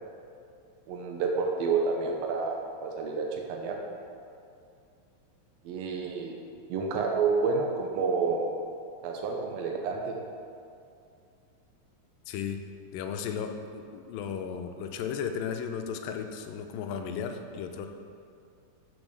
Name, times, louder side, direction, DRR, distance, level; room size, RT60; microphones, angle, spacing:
voice 1, 0.9-3.8 5.6-6.3 6.7-8.5 9.0-10.1, right 4 dB, 80° right, 1 dB, 1.5 m, -29 dB
voice 2, 12.3-12.6 12.9-17.9, left 7 dB, 90° left, 6 dB, 2.3 m, -35 dB
7.1 x 6.2 x 6.6 m, 2.5 s
omnidirectional pair, 4.0 m